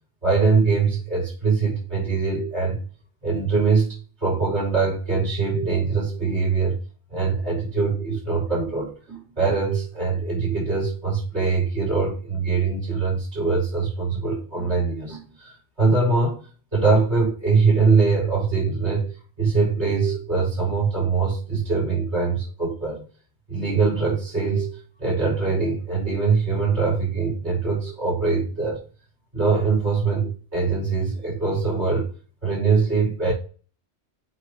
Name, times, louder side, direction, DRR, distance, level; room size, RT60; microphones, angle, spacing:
voice 1, 0.2-2.8 3.2-3.9 4.2-6.8 7.1-15.5 15.8-16.4 16.7-23.0 23.5-28.8 29.3-32.1 32.4-33.3, right 4 dB, 75° right, 4.7 m, -22 dB
8.2 x 3.3 x 4.9 m
omnidirectional pair, 1.2 m